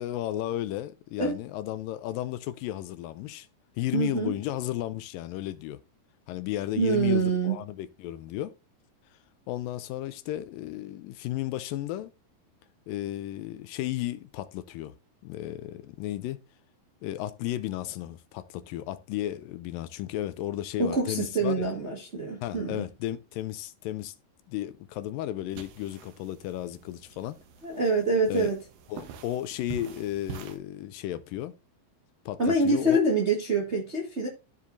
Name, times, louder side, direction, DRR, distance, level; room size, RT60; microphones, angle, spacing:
voice 1, 0.0-3.5 3.8-5.8 6.3-8.5 9.5-12.1 12.9-14.9 15.2-16.4 17.0-21.7 22.4-24.1 24.5-27.4 28.3-28.5 28.9-31.5 32.3-33.0, left 13 dB, 80° left, 2.2 m, -34 dB
voice 2, 3.9-4.4 6.7-7.5 20.8-22.9 27.6-28.6 32.4-34.3, right 2 dB, 45° right, 0.8 m, -25 dB
sound 1, 25.5-30.6, right 8 dB, 80° right, 2.8 m, -45 dB
14.0 x 5.0 x 2.6 m
omnidirectional pair, 4.0 m